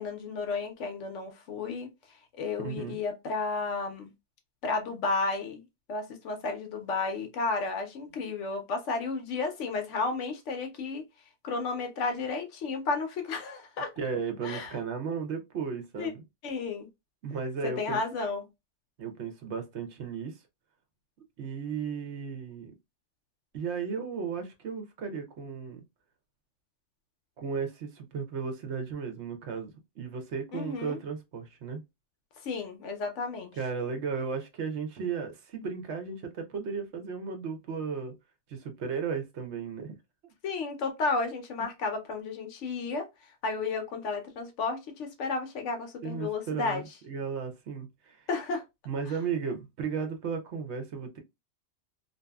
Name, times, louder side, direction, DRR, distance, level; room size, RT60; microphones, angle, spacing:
voice 1, 0.0-1.9 2.4-4.1 4.6-5.6 5.9-11.0 11.4-13.9 14.4-14.7 16.0-16.1 16.4-16.9 17.6-18.4 30.5-31.0 32.4-33.5 40.4-43.1 43.4-46.8 48.3-48.6, left 4 dB, 75° left, 0.9 m, -32 dB
voice 2, 2.6-3.0 14.0-16.2 17.2-18.0 19.0-20.3 21.4-22.7 23.5-25.8 27.4-29.7 30.0-31.8 33.5-38.1 38.5-40.0 46.0-48.3 48.9-51.2, right 6 dB, 70° right, 1.0 m, -35 dB
2.7 x 2.6 x 2.2 m
omnidirectional pair, 1.2 m